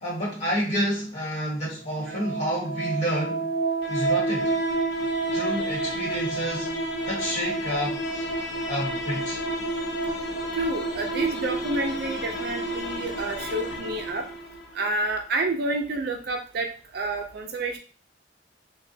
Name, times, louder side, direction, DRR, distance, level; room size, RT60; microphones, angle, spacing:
voice 1, 0.0-3.5 3.9-4.6 5.3-8.3 8.7-9.4, equal, 40° left, -5 dB, 1.6 m, -29 dB
sound 1, 1.9-14.8, right 2 dB, 70° left, 0.6 m, -29 dB
voice 2, 10.5-14.3 14.7-17.8, right 2 dB, 60° right, 4 dB, 0.5 m, -29 dB
3.2 x 2.2 x 2.7 m, 0.37 s
head